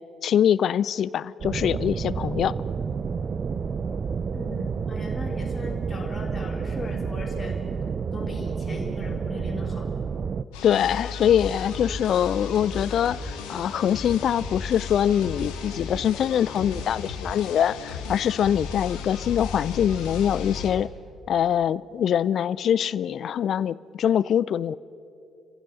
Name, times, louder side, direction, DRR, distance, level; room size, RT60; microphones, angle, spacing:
voice 1, 0.2-2.5 10.6-20.9 21.3-24.7, left 9 dB, 55° left, 21 dB, 0.4 m, -23 dB
sound 1, 1.4-10.4, right 6 dB, 45° right, 0.6 m, -30 dB
voice 2, 4.3-7.6 8.1-9.9, left 3 dB, 30° left, 0 dB, 4.2 m, -38 dB
sound 2, 10.5-20.7, left 4 dB, 70° left, 2.0 m, -35 dB
29.5 x 15.5 x 5.6 m, 2.8 s
figure-of-eight pair, 45°, 0 cm